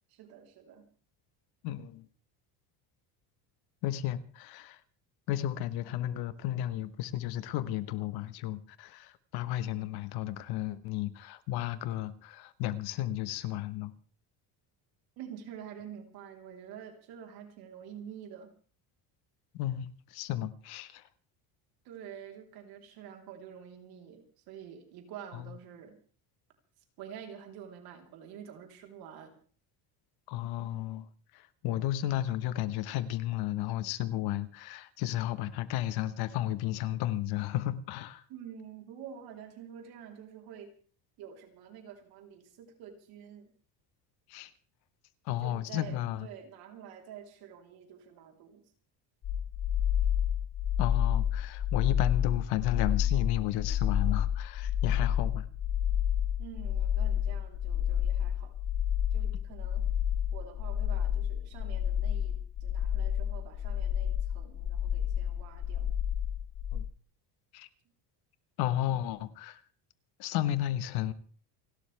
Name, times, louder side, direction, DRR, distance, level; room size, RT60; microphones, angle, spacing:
voice 1, 0.1-0.9 15.2-18.5 21.8-26.0 27.0-29.4 38.3-40.7 41.2-43.5 45.4-48.6 56.4-58.5 59.1-59.9 60.3-65.9, right 8 dB, 55° right, 3.8 m, -48 dB
voice 2, 1.6-2.0 3.8-4.8 5.3-13.9 19.5-21.0 25.3-25.4 30.3-31.0 31.3-38.2 44.3-44.5 45.2-46.3 50.8-55.5 66.7-66.8 67.5-67.7 68.6-69.6 70.2-71.1, left 13 dB, 60° left, 1.3 m, -33 dB
sound 1, 49.2-66.8, left 9 dB, 40° left, 5.5 m, -30 dB
29.5 x 12.5 x 3.4 m
cardioid pair, 180°, 43 cm